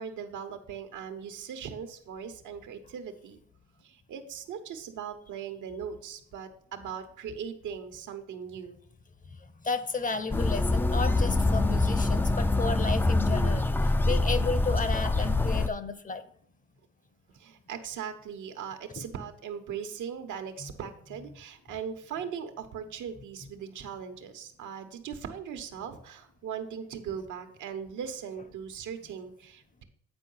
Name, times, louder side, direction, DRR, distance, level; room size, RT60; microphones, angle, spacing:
voice 1, 0.0-3.4 3.8-8.8 17.3-29.8, right 7 dB, 80° right, 7 dB, 1.2 m, -39 dB
voice 2, 9.3-16.3 19.0-19.1 20.6-20.7, left 4 dB, 25° left, 13 dB, 0.7 m, -33 dB
sound 1, 10.3-15.7, left 2 dB, 5° left, 0.3 m, -25 dB
8.9 x 4.6 x 5.6 m, 0.65 s
cardioid pair, 90°, 30 cm